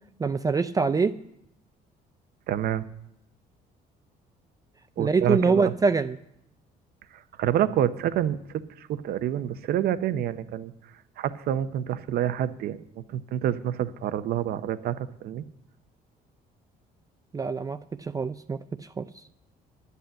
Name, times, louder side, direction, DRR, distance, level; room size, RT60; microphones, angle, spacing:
voice 1, 0.2-1.1 5.0-6.2 17.3-18.6 19.0-19.1, right 4 dB, 20° right, 0.4 m, -24 dB
voice 2, 2.5-2.8 5.0-5.7 7.1-8.4 8.8-10.7 11.2-15.4, right 11 dB, 65° right, 0.7 m, -28 dB
11.5 x 8.3 x 7.6 m
cardioid pair, 110°, 17 cm